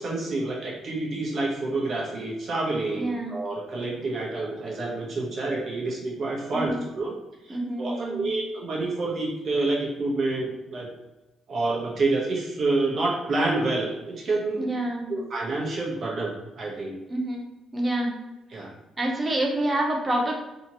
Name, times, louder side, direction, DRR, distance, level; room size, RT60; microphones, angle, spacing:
voice 1, 0.0-7.1 7.4-10.9 11.5-14.7 15.1-17.0 18.5-18.7, right 2 dB, 50° right, -4 dB, 1.2 m, -28 dB
voice 2, 3.0-3.3 6.5-6.9 7.5-8.3 14.6-15.1 17.1-18.1 19.0-20.4, right 1 dB, 20° right, 0 dB, 0.7 m, -27 dB
3.4 x 2.9 x 3.0 m, 1.0 s
cardioid pair, 105°, 0 cm